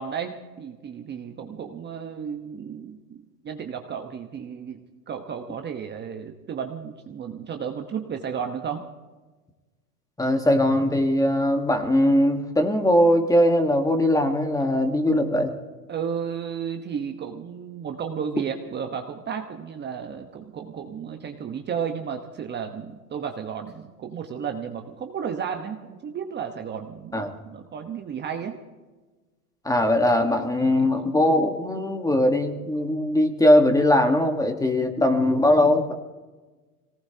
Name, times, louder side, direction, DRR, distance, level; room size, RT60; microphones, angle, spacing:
voice 1, 0.0-4.8 5.1-8.8 15.9-28.6 30.3-30.4 30.8-30.9, right 7 dB, 20° right, 4 dB, 1.1 m, -33 dB
voice 2, 10.2-15.5 27.1-27.3 29.6-35.9, left 1 dB, 5° left, 6 dB, 1.5 m, -20 dB
23.5 x 18.5 x 2.9 m, 1.3 s
hypercardioid pair, 115°, 47 cm